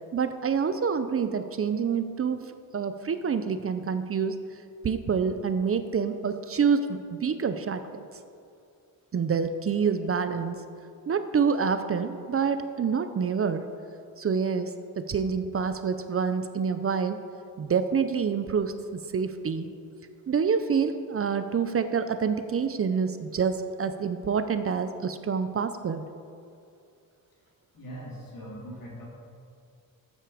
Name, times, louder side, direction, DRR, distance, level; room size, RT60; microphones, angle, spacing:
voice 1, 0.1-2.4 2.7-4.4 4.8-8.1 9.1-10.6 11.1-13.6 14.2-17.2 17.6-19.7 20.3-26.0, right 6 dB, 40° right, 10 dB, 0.6 m, -27 dB
voice 2, 27.7-29.0, right 1 dB, 65° left, -4 dB, 3.5 m, -41 dB
13.0 x 9.2 x 5.0 m, 2.4 s
wide cardioid pair, 135°, 36 cm